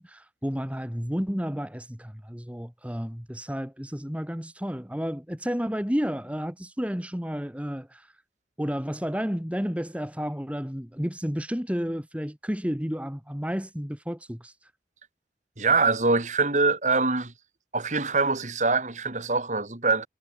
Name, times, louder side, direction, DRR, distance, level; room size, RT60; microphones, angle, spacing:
voice 1, 0.0-8.1 8.6-14.5, equal, 5° right, 1.8 m, -31 dB
voice 2, 15.6-17.3 17.7-20.1, right 3 dB, 45° right, 2.4 m, -24 dB
head